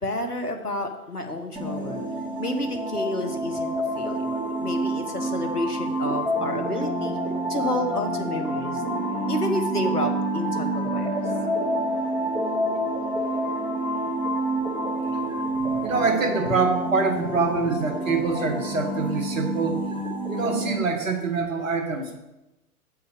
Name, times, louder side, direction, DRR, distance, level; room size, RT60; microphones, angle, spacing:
voice 1, 0.0-2.0 2.4-7.2 7.5-8.8 9.3-11.1 15.5-15.9, left 1 dB, 90° left, 5 dB, 1.4 m, -30 dB
sound 1, 1.6-20.7, right 1 dB, 5° right, 1.8 m, -28 dB
voice 2, 15.8-22.2, right 4 dB, 60° right, 4 dB, 1.7 m, -25 dB
8.0 x 5.6 x 6.8 m, 0.98 s
figure-of-eight pair, 110°, 45 cm